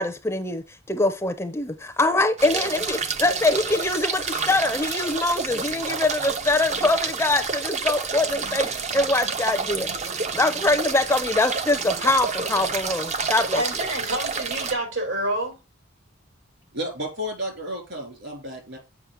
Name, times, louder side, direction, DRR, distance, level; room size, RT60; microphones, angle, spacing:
voice 1, 0.0-13.6, left 2 dB, 10° left, 0.5 m, -23 dB
sound 1, 2.4-14.7, right 5 dB, 35° right, 0.6 m, -29 dB
voice 2, 13.2-15.6, right 1 dB, 80° right, 3.3 m, -28 dB
voice 3, 16.7-18.8, equal, 60° right, 3.4 m, -32 dB
7.2 x 5.3 x 5.1 m
head